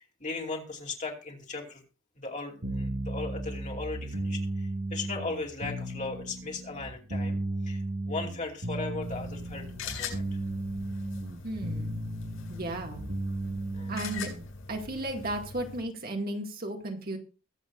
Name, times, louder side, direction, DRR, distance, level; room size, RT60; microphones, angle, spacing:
voice 1, 0.0-1.8 2.2-7.4 7.7-10.2 13.7-14.0, left 3 dB, 35° left, 1 dB, 2.8 m, -37 dB
sound 1, 2.6-14.5, right 1 dB, 60° right, 1.6 m, -35 dB
sound 2, 9.0-15.8, left 5 dB, 70° left, 7.6 m, -42 dB
voice 2, 11.4-12.0 12.5-13.0 13.9-14.3 14.7-17.2, right 1 dB, 45° right, 2 dB, 2.0 m, -34 dB
22.5 x 8.0 x 2.5 m, 0.34 s
head